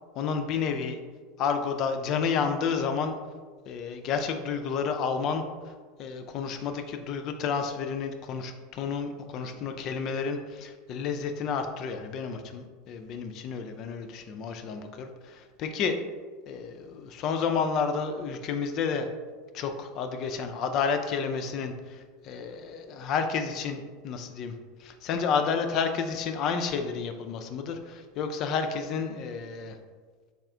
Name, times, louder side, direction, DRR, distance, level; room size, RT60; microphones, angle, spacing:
voice 1, 0.2-1.0 1.4-3.1 3.7-5.4 6.0-16.0 16.5-19.1 19.5-24.5 24.8-29.8, left 6 dB, 45° left, 6 dB, 0.3 m, -30 dB
4.0 x 2.4 x 3.6 m, 1.5 s
figure-of-eight pair, 80°, 0 cm